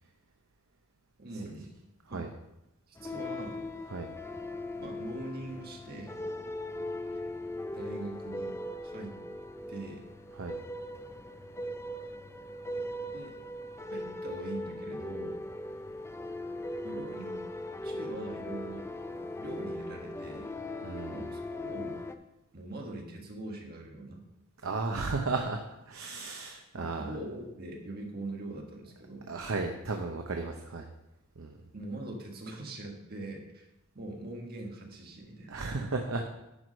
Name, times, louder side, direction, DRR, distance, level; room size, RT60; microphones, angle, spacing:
voice 1, 1.2-1.7 2.1-2.3 2.9-3.6 4.8-6.2 7.1-7.2 7.7-9.2 9.7-10.0 13.1-13.3 13.9-15.5 16.8-17.4 17.8-20.5 21.1-22.0 22.5-24.2 26.7-29.3 31.7-33.7 33.9-35.5, right 1 dB, 45° right, 1 dB, 1.5 m, -42 dB
sound 1, 3.0-22.2, left 1 dB, 10° left, 0.4 m, -39 dB
voice 2, 20.8-21.2 24.6-27.2 29.3-30.9 31.4-31.6 35.5-36.3, right 3 dB, 65° right, 3 dB, 0.7 m, -34 dB
10.5 x 4.8 x 5.2 m, 0.90 s
head